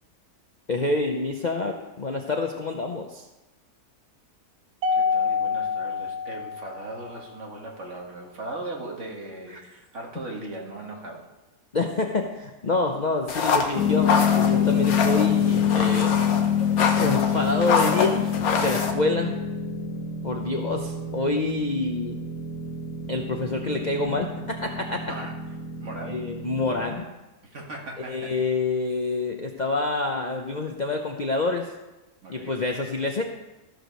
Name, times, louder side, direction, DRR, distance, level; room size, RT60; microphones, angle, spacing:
voice 1, 0.7-3.3 9.5-9.6 11.7-16.1 17.0-19.4 20.2-22.2 23.1-25.1 26.0-27.1 28.1-31.7 32.3-33.2, left 3 dB, 40° left, 2 dB, 0.6 m, -27 dB
Mallet percussion, 4.8-7.3, left 5 dB, 80° right, 1.3 m, -27 dB
voice 2, 4.9-11.3 25.1-25.4 25.8-26.2 27.4-28.4 32.2-32.6, right 2 dB, 50° right, 0 dB, 1.9 m, -38 dB
sound 1, 13.3-18.9, left 5 dB, 70° left, 1.4 m, -26 dB
sound 2, 13.8-27.0, left 7 dB, 85° left, 1.7 m, -26 dB
14.0 x 5.0 x 6.3 m, 1.1 s
omnidirectional pair, 1.7 m